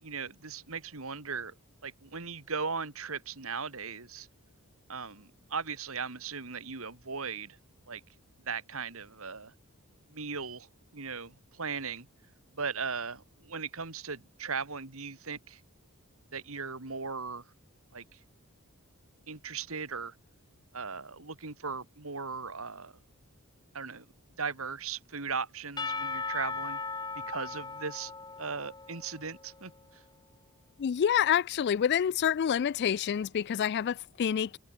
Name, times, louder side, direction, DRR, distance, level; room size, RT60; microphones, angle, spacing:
voice 1, 0.0-1.5 1.8-4.3 4.9-7.6 7.9-8.0 8.4-9.5 10.1-10.7 10.9-12.1 12.6-15.6 16.3-17.5 17.9-18.2 19.3-20.1 20.7-22.9 23.7-24.1 24.4-26.8 27.3-28.1 28.4-29.7, right 5 dB, 65° right, 2.2 m, -38 dB
Percussion / Church bell, 25.8-29.6, left 4 dB, 20° left, 1.4 m, -38 dB
voice 2, 30.8-34.6, left 8 dB, 50° left, 0.3 m, -27 dB
head